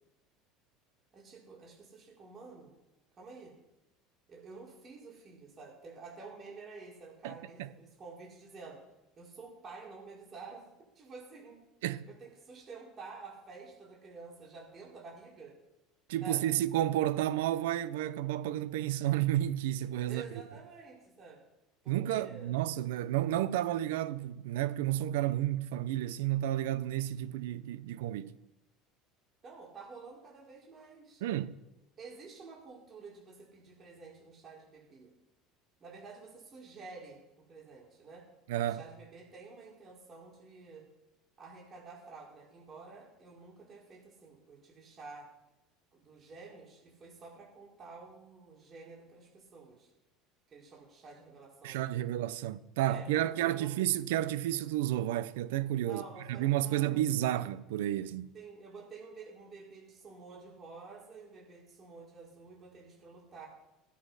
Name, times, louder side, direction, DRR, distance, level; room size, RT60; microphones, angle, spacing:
voice 1, 1.1-2.7 3.2-3.5 4.3-8.8 9.2-10.6 10.9-11.6 12.1-15.5 16.2-16.5 20.1-21.4 21.8-22.5 29.4-31.2 32.0-35.1 35.8-37.2 37.5-38.2 38.6-40.9 41.4-45.3 45.9-49.9 50.5-51.9 52.8-53.7 55.9-57.0 58.3-63.5, right 4 dB, 35° right, 4.6 m, -50 dB
voice 2, 7.2-7.7 11.8-12.1 16.1-20.2 21.9-28.3 31.2-31.6 38.5-38.8 51.6-56.0 56.3-58.3, right 13 dB, 90° right, 0.7 m, -31 dB
16.5 x 8.8 x 5.6 m
supercardioid pair, 115°, 0 cm